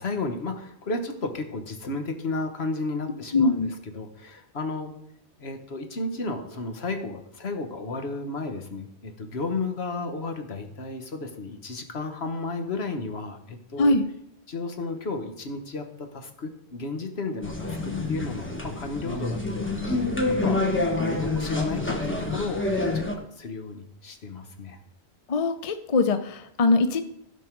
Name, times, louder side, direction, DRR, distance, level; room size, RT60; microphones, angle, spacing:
voice 1, 0.0-3.7 3.9-4.9 5.4-13.9 14.5-20.0 20.3-24.8, left 3 dB, 70° left, 6 dB, 1.4 m, -33 dB
voice 2, 3.3-3.7 13.8-14.1 25.3-27.0, left 3 dB, 40° left, 8 dB, 0.7 m, -22 dB
sound 1, 17.4-23.2, left 2 dB, 10° left, 1.1 m, -27 dB
16.0 x 5.4 x 4.6 m, 0.75 s
omnidirectional pair, 1.1 m